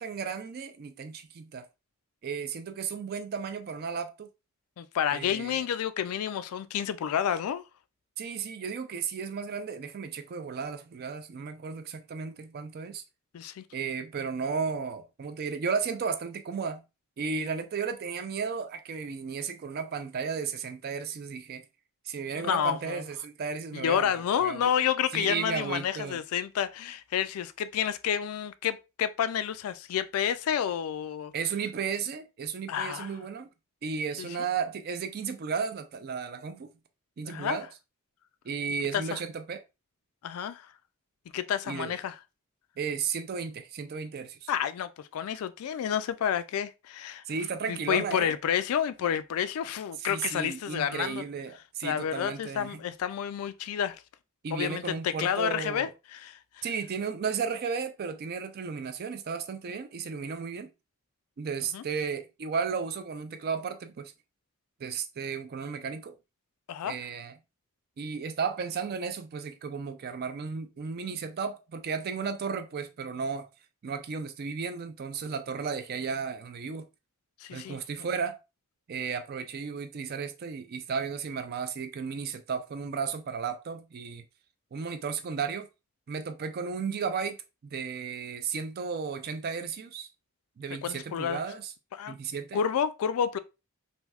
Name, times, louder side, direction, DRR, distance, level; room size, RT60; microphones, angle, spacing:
voice 1, 0.0-1.7 2.2-4.3 5.1-5.6 8.2-13.0 13.7-16.8 17.2-21.6 22.1-24.7 25.1-26.2 31.3-33.5 33.8-36.7 37.2-37.7 38.4-39.6 41.7-41.9 42.8-44.5 47.3-48.3 50.0-52.8 54.4-55.9 56.6-60.7 61.4-64.1 64.8-66.1 66.8-67.3 68.0-73.5 73.8-76.9 77.5-78.4 78.9-84.2 84.7-85.7 86.1-87.4 87.7-90.1 90.6-91.7 92.1-92.6, right 5 dB, 45° right, 0.3 m, -34 dB
voice 2, 4.8-7.6 13.3-13.6 22.4-23.0 23.7-31.3 32.7-33.1 34.2-34.3 37.2-37.6 38.9-39.2 40.2-40.7 41.3-42.1 44.5-47.2 47.7-51.2 51.8-54.0 54.5-56.6 61.7-61.8 66.7-66.9 77.4-77.8 90.8-91.4 91.9-92.2 92.5-93.4, left 8 dB, 75° left, 0.3 m, -30 dB
3.3 x 2.6 x 2.3 m
head